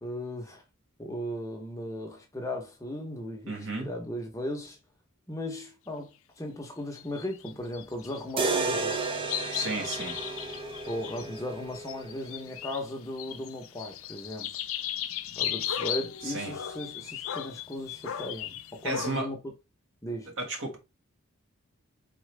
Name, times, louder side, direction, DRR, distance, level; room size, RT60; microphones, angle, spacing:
voice 1, 0.0-0.6 1.0-4.8 5.3-9.2 10.9-14.5 15.4-19.4 20.0-20.3, left 1 dB, 15° left, 0.8 m, -37 dB
voice 2, 3.5-3.9 9.5-10.2 16.2-16.6 18.8-19.3 20.4-20.8, right 2 dB, 60° right, 1.4 m, -33 dB
sound 1, 7.0-8.5 8.8-12.9 13.2-19.2, left 10 dB, 70° left, 0.5 m, -36 dB
sound 2, 8.4-12.4, right 3 dB, 25° right, 0.4 m, -32 dB
4.2 x 3.7 x 3.3 m
head